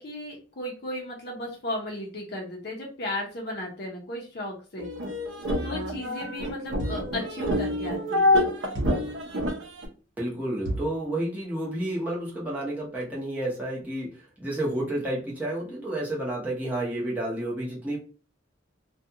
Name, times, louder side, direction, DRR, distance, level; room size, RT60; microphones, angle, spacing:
voice 1, 0.0-4.9 5.6-8.3, left 1 dB, 55° left, -1 dB, 0.7 m, -35 dB
sound 1, 4.8-9.9, left 1 dB, 90° right, 0.6 m, -27 dB
sound 2, 6.8-7.2 8.7-9.2 10.6-11.0, right 1 dB, 65° right, 1.0 m, -33 dB
voice 2, 10.2-18.0, right 1 dB, 10° right, -5 dB, 0.9 m, -30 dB
2.4 x 2.3 x 2.7 m, 0.37 s
head